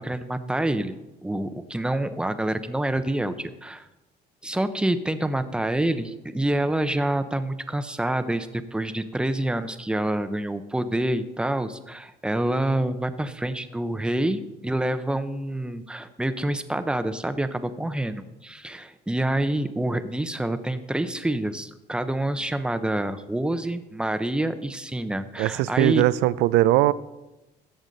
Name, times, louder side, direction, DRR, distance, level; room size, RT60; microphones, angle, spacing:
voice 1, 0.0-3.9 4.4-26.0, right 1 dB, 5° right, 11 dB, 0.7 m, -27 dB
voice 2, 25.4-26.9, right 16 dB, 90° right, 18 dB, 0.4 m, -20 dB
14.0 x 8.0 x 4.0 m, 1.0 s
cardioid pair, 110°, 17 cm